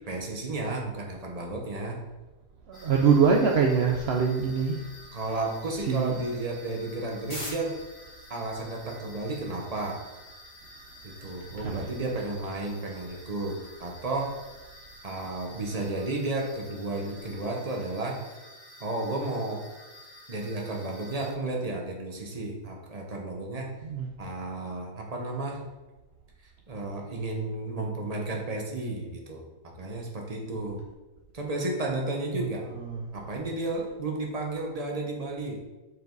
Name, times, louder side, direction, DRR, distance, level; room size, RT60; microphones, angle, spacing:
voice 1, 0.1-2.0 5.1-7.8 8.3-10.0 11.0-14.4 15.0-18.2 18.8-19.6 20.3-23.7 24.2-25.6 26.7-29.5 29.8-30.8 31.3-32.7 33.1-35.6, right 2 dB, 25° right, 0 dB, 1.1 m, -32 dB
sound 1, 2.7-21.3, left 1 dB, 35° left, 3.0 m, -48 dB
voice 2, 2.7-4.8 5.9-6.2 11.6-11.9 23.8-24.1 32.3-32.5 32.7-33.0, right 6 dB, 60° right, 0 dB, 0.7 m, -24 dB
7.5 x 5.0 x 3.9 m, 1.1 s
omnidirectional pair, 1.7 m